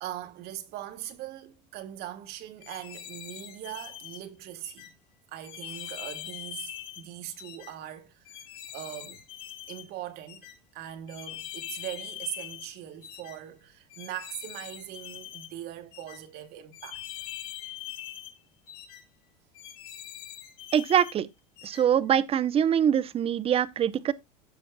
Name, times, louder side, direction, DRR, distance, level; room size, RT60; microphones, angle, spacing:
voice 1, 0.0-4.9 5.3-6.7 7.0-8.2 8.7-9.2 9.7-10.4 10.7-17.0, right 12 dB, 55° right, 1.5 m, -40 dB
sound 1, 2.6-4.2 4.6-4.9 5.4-7.0 7.4-7.7 8.3-9.9 10.3-10.5 11.1-12.7 13.0-13.4 13.9-15.5 15.9-16.2 16.7-18.3 18.7-19.0 19.5-21.1 21.6-21.8, left 12 dB, 65° left, 3.2 m, -42 dB
voice 2, 20.7-21.3 21.6-24.1, right 9 dB, 30° right, 0.7 m, -24 dB
15.5 x 6.3 x 2.2 m
supercardioid pair, 125°, 20 cm